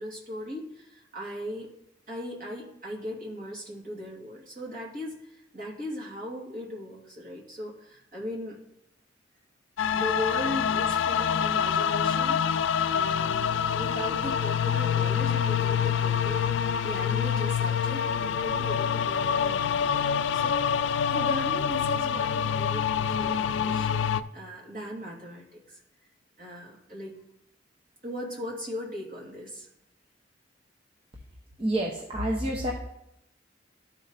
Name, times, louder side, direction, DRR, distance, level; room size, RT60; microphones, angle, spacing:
voice 1, 0.0-1.7 2.1-8.6 9.9-25.8 26.4-27.2 28.0-29.7, equal, 50° right, -3 dB, 2.6 m, -38 dB
sound 1, 9.8-24.2, left 7 dB, 85° left, 0.4 m, -26 dB
voice 2, 31.6-32.7, right 1 dB, 30° right, -1 dB, 0.9 m, -28 dB
12.5 x 4.3 x 4.1 m, 0.81 s
head